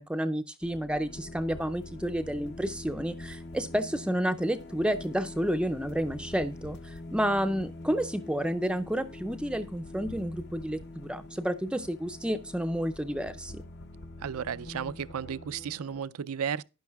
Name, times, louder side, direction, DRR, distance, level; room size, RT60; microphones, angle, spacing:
voice 1, 0.0-13.6, equal, 5° right, 0.4 m, -30 dB
sound 1, 0.6-16.0, left 2 dB, 50° left, 0.7 m, -44 dB
voice 2, 14.2-16.6, right 7 dB, 90° right, 0.5 m, -34 dB
12.0 x 10.0 x 2.3 m
head